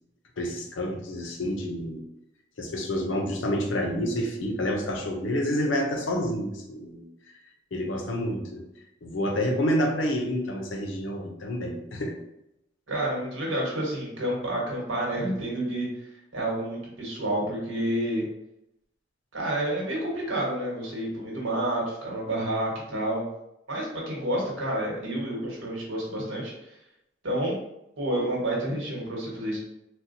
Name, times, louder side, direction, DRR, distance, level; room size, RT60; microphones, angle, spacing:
voice 1, 0.4-2.0 2.6-7.0 7.7-8.6 9.0-12.1, equal, 75° left, 2 dB, 0.6 m, -28 dB
voice 2, 12.9-16.1 16.3-18.3 19.3-23.2 23.7-26.5 27.2-27.5 28.0-29.6, right 1 dB, 75° right, -3 dB, 1.3 m, -29 dB
4.1 x 2.2 x 2.6 m, 0.84 s
head